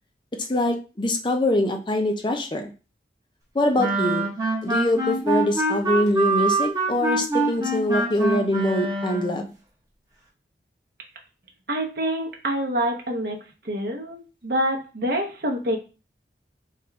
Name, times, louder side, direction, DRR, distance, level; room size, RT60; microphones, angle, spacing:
voice 1, 0.5-2.7 3.5-4.3 4.6-9.5, left 1 dB, 25° left, 4 dB, 0.5 m, -24 dB
sound 1, 3.8-9.4, right 2 dB, 20° right, 0.9 m, -25 dB
voice 2, 11.7-13.4 13.6-15.8, right 1 dB, 55° right, 1 dB, 0.9 m, -26 dB
4.8 x 2.4 x 3.5 m, 0.33 s
head